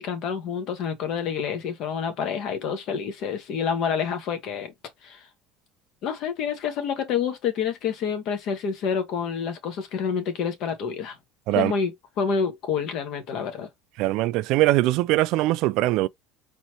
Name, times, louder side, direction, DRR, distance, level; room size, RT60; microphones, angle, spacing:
voice 1, 0.0-4.7 5.0-5.2 6.0-11.2 11.5-13.7, left 6 dB, 50° left, 1.5 m, -28 dB
voice 2, 14.0-16.1, right 17 dB, 60° right, 0.3 m, -21 dB
4.2 x 3.1 x 2.9 m
cardioid pair, 150°, 0 cm